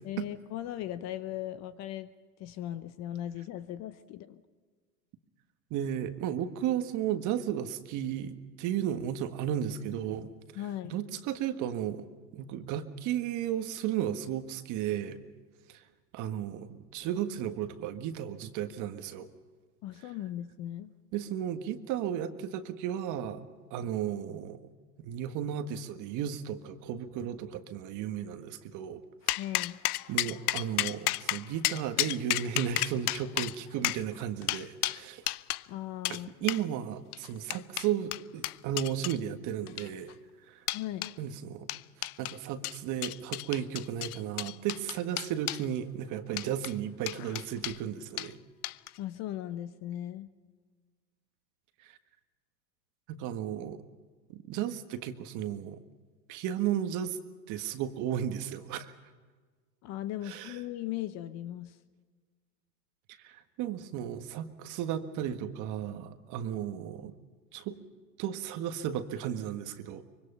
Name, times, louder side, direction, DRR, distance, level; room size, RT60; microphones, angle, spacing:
voice 1, 0.0-2.1 2.4-4.4 10.5-11.0 19.8-20.9 29.4-29.8 35.7-36.3 40.7-41.1 49.0-50.3 59.8-61.8, left 12 dB, 35° left, 13 dB, 0.9 m, -38 dB
voice 2, 5.7-10.3 10.8-12.1 12.3-15.2 15.7-15.8 16.1-19.3 21.1-23.4 23.7-24.6 25.0-29.0 29.3-29.4 30.1-35.2 36.1-40.1 40.5-40.6 41.2-41.7 42.2-48.4 51.8-52.0 53.1-53.8 54.3-55.8 56.3-57.2 57.5-58.9 60.2-60.6 63.2-67.1 67.5-67.8 68.2-70.0, right 10 dB, 35° right, 9 dB, 1.6 m, -34 dB
sound 1, 29.3-35.6 36.0-36.2 36.5-36.6 37.1-39.2 39.7-40.1 40.7-41.1 41.7-42.4 42.6-45.6 46.3-46.7 47.1-47.8 48.2-48.3 48.6-49.0, left 17 dB, 65° left, 0.7 m, -32 dB
25.0 x 24.0 x 5.6 m, 1.5 s
hypercardioid pair, 130°, 49 cm